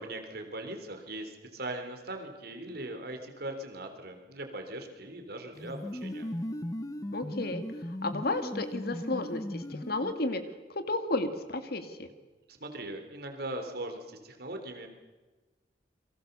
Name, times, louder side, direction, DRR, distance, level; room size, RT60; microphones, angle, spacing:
voice 1, 0.0-6.3 12.5-14.9, right 1 dB, 60° right, 5 dB, 3.7 m, -40 dB
sound 1, 5.5-10.5, left 1 dB, 20° left, 1.0 m, -38 dB
voice 2, 7.1-7.6 8.0-10.4 10.7-12.1, left 2 dB, 60° left, 8 dB, 2.3 m, -32 dB
29.0 x 23.5 x 6.9 m, 1.2 s
head